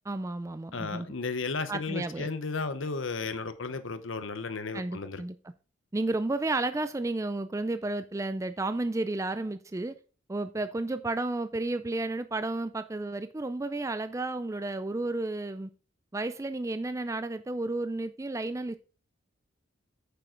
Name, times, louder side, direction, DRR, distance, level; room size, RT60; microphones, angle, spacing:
voice 1, 0.1-1.1 1.7-2.3 4.7-5.4 5.9-10.0 10.3-15.7 16.1-18.8, right 2 dB, 15° right, 11 dB, 0.3 m, -32 dB
voice 2, 0.7-5.2, left 4 dB, 80° left, 10 dB, 0.9 m, -34 dB
9.4 x 6.9 x 3.8 m, 0.37 s
head